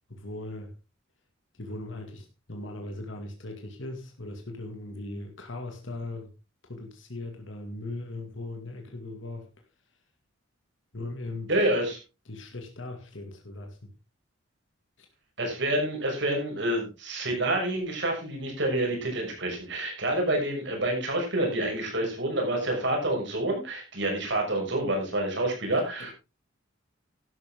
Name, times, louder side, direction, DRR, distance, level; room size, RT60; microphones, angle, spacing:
voice 1, 0.1-0.7 1.6-6.3 6.6-9.5 10.9-11.5 12.3-13.9 26.0-26.1, left 2 dB, 65° left, 2.3 m, -39 dB
voice 2, 11.5-12.0 15.4-26.1, right 1 dB, 60° right, 6.1 m, -28 dB
12.5 x 11.0 x 3.7 m
head